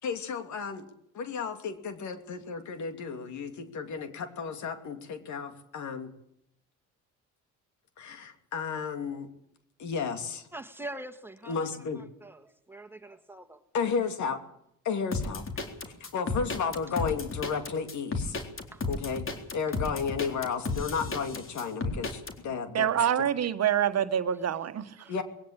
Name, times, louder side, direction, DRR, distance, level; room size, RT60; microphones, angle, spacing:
voice 1, 0.0-0.9 1.1-6.1 8.0-9.3 9.8-10.5 11.5-12.0 13.7-14.4 14.8-15.5 16.0-18.4 18.9-19.3 19.5-22.9 25.1-25.2, left 6 dB, 70° left, 8 dB, 2.9 m, -33 dB
voice 2, 10.5-11.7 11.9-13.6 18.7-18.8 25.0-25.2, right 1 dB, 5° right, 6 dB, 2.2 m, -44 dB
sound 1, 15.1-22.3, left 3 dB, 45° left, 3.9 m, -33 dB
voice 3, 22.7-25.2, right 9 dB, 55° right, 10 dB, 1.5 m, -27 dB
21.0 x 17.0 x 8.9 m, 0.74 s
cardioid pair, 90°, 30 cm